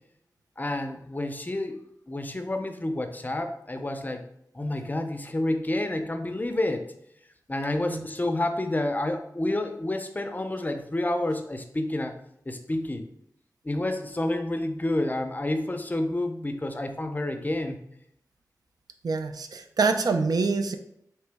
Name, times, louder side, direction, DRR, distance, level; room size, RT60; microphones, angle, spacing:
voice 1, 0.6-1.8 2.1-4.2 4.5-6.9 7.5-12.1 12.5-13.1 13.6-17.8, left 1 dB, 25° left, 6 dB, 0.5 m, -29 dB
voice 2, 19.0-20.8, right 4 dB, 75° right, 7 dB, 0.4 m, -25 dB
3.8 x 3.0 x 3.4 m, 0.73 s
wide cardioid pair, 70°, 7 cm